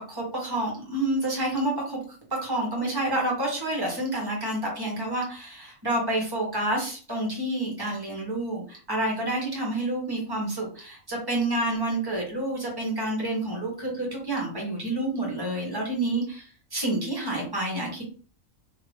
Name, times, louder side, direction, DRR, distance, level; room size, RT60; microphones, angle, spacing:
voice 1, 0.1-2.0 2.3-18.0, right 1 dB, 20° right, -2 dB, 1.1 m, -29 dB
2.8 x 2.7 x 3.1 m, 0.41 s
omnidirectional pair, 1.4 m